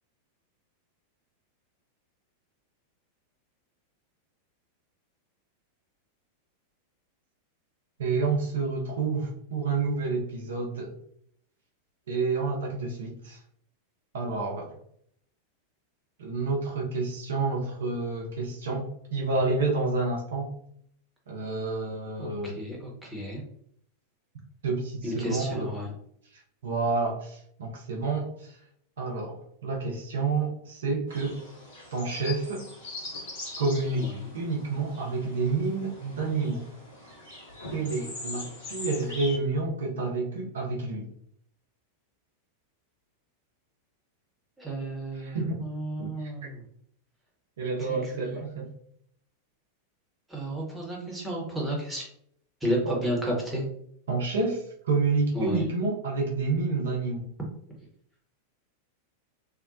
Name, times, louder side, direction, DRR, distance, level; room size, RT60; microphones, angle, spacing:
voice 1, 8.0-11.0 12.1-13.4 14.1-14.7 16.2-20.5 21.3-22.6 24.6-25.7 26.6-28.6 29.0-31.4 31.9-32.6 33.6-36.6 37.7-41.1 45.2-45.6 46.0-46.3 47.6-48.7 54.1-57.3, right 3 dB, 65° right, -1 dB, 0.6 m, -29 dB
voice 2, 22.2-23.4 25.0-25.9 34.0-34.3 44.6-46.6 47.8-48.4 50.3-52.1 52.6-53.7 55.3-55.7, right 1 dB, 5° right, -3 dB, 0.9 m, -32 dB
sound 1, 31.1-39.4, left 2 dB, 55° left, 1.1 m, -42 dB
2.7 x 2.1 x 2.5 m, 0.68 s
figure-of-eight pair, 90°, 0 cm